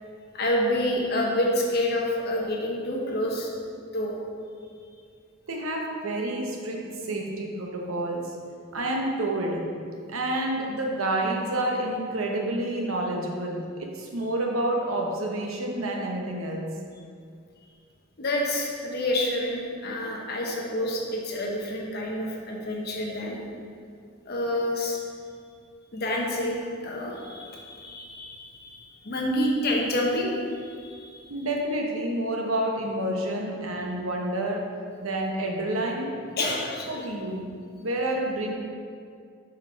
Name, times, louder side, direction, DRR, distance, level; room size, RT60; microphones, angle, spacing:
voice 1, 0.3-3.5 3.9-4.1 18.2-23.4 24.3-25.0 25.9-30.3 30.6-31.3 36.4-37.0, left 1 dB, 50° left, -1 dB, 1.1 m, -28 dB
voice 2, 5.5-8.3 8.7-9.7 10.1-16.7 31.3-34.6 35.0-36.2 36.9-37.5 37.8-38.5, right 1 dB, 85° right, 0 dB, 1.0 m, -29 dB
6.7 x 5.2 x 4.5 m, 2.3 s
head